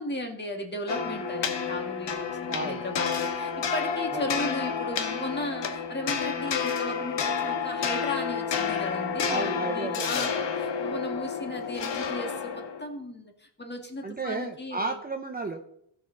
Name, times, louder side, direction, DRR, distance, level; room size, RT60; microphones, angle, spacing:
voice 1, 0.0-15.0, left 1 dB, 20° left, 3 dB, 1.8 m, -36 dB
sound 1, 0.9-12.9, left 6 dB, 55° left, 1.3 m, -30 dB
voice 2, 2.5-2.8 4.1-4.3 9.3-10.3 14.0-15.6, right 3 dB, 20° right, 4 dB, 0.8 m, -33 dB
16.0 x 6.3 x 3.9 m, 0.73 s
cardioid pair, 115°, 50 cm